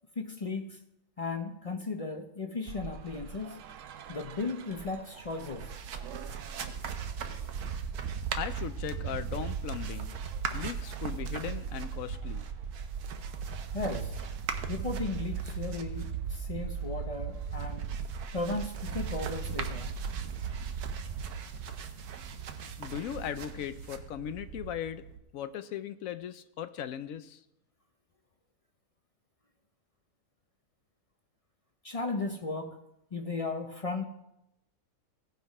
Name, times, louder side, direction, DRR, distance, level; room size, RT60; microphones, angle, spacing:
voice 1, 0.2-0.8 1.2-3.6 4.1-5.7 13.7-14.2 14.7-17.9 18.3-19.9 31.8-32.8 33.1-34.0, left 3 dB, 40° left, 6 dB, 0.5 m, -36 dB
sound 1, 2.7-21.4, right 7 dB, 65° right, 0.9 m, -38 dB
sound 2, 5.2-25.2, right 6 dB, 85° right, 1.4 m, -43 dB
voice 2, 8.4-10.2 10.5-12.5 22.8-25.1 25.3-27.4, left 9 dB, 70° left, 12 dB, 0.9 m, -38 dB
17.5 x 5.9 x 4.8 m, 0.84 s
omnidirectional pair, 1.6 m